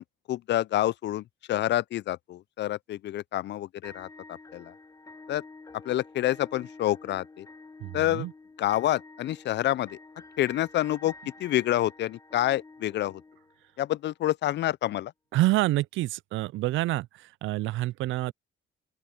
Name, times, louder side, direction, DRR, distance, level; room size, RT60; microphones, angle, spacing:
voice 1, 0.0-4.1 4.5-4.7 5.3-5.4 5.8-7.5 7.9-8.3 8.6-10.0 10.4-11.1 11.4-13.2 13.8-15.1, left 13 dB, 65° left, 0.4 m, -28 dB
sound 1, 3.8-13.9, left 3 dB, 15° left, 1.2 m, -49 dB
voice 2, 7.8-8.3 15.3-18.3, right 17 dB, 80° right, 0.4 m, -27 dB
open air
cardioid pair, 90°, 20 cm